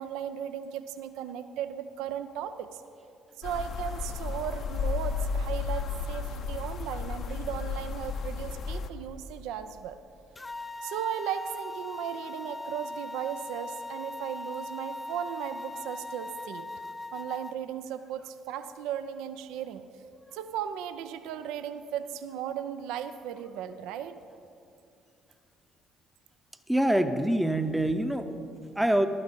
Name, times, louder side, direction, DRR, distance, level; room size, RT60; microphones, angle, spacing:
voice 1, 0.0-2.8 3.4-10.0 10.8-16.7 17.1-19.8 20.3-24.2, right 9 dB, 65° right, 11 dB, 0.4 m, -36 dB
sound 1, 3.4-8.9, left 5 dB, 50° left, 0.6 m, -33 dB
sound 2, 10.4-17.5, left 2 dB, 20° left, 0.3 m, -40 dB
voice 2, 26.7-29.1, right 1 dB, 5° right, 9 dB, 0.7 m, -26 dB
12.0 x 9.7 x 5.2 m, 2.6 s
figure-of-eight pair, 45°, 0 cm